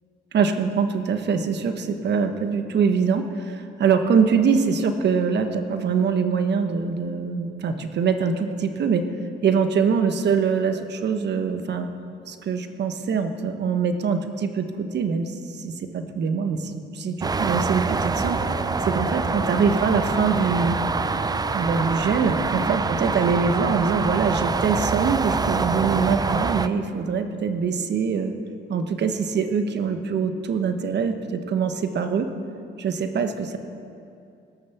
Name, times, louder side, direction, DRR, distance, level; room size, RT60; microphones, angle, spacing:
voice 1, 0.3-9.1 9.4-11.9 12.3-18.4 18.9-20.8 21.5-28.3 28.7-32.3 32.8-33.6, right 5 dB, 60° right, 7 dB, 1.2 m, -23 dB
sound 1, 17.2-26.7, right 4 dB, 20° right, 0.4 m, -25 dB
sound 2, 18.2-26.0 26.3-26.6, left 7 dB, 90° left, 0.8 m, -41 dB
17.5 x 6.8 x 7.1 m, 2.6 s
cardioid pair, 90°, 20 cm